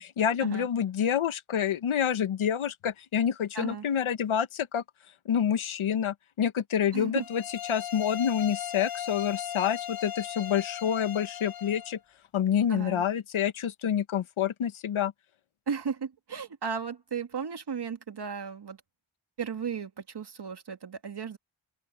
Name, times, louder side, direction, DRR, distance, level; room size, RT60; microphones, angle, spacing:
voice 1, 0.0-4.8 5.2-7.4 7.7-12.0 12.3-15.1, left 8 dB, 80° left, 1.2 m, -28 dB
voice 2, 3.5-3.9 6.9-7.3 12.7-13.0 15.7-18.8 19.4-21.4, right 6 dB, 55° right, 2.2 m, -35 dB
sound 1, 7.2-12.0, left 10 dB, 45° left, 1.1 m, -37 dB
open air
cardioid pair, 80°, 48 cm